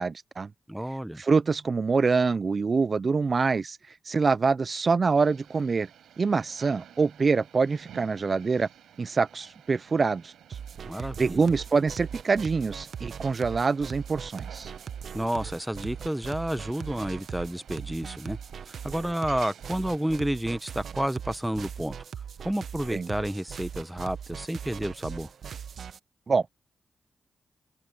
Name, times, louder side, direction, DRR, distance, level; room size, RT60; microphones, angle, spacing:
voice 1, 0.0-0.5 1.2-5.9 6.2-8.7 9.0-10.6 11.2-14.7 22.9-23.1 26.3-26.5, right 4 dB, 45° right, 0.4 m, -25 dB
voice 2, 0.7-1.2 10.8-11.5 15.1-18.4 18.7-22.0 22.4-25.3, right 1 dB, 5° right, 1.2 m, -30 dB
sound 1, 5.2-20.3, right 10 dB, 90° right, 6.9 m, -53 dB
sound 2, 10.5-26.0, right 7 dB, 70° right, 1.0 m, -40 dB
open air
cardioid pair, 60°, 0 cm